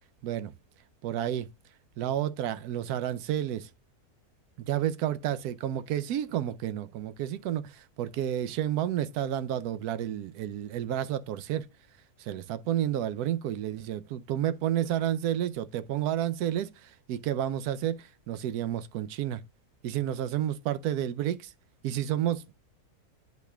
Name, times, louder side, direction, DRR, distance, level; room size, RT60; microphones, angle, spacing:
voice 1, 1.0-1.5 2.0-3.7 4.7-11.7 12.2-19.4 19.8-21.5 21.8-22.6, right 11 dB, 80° right, 1.1 m, -30 dB
10.5 x 4.2 x 2.2 m
omnidirectional pair, 1.6 m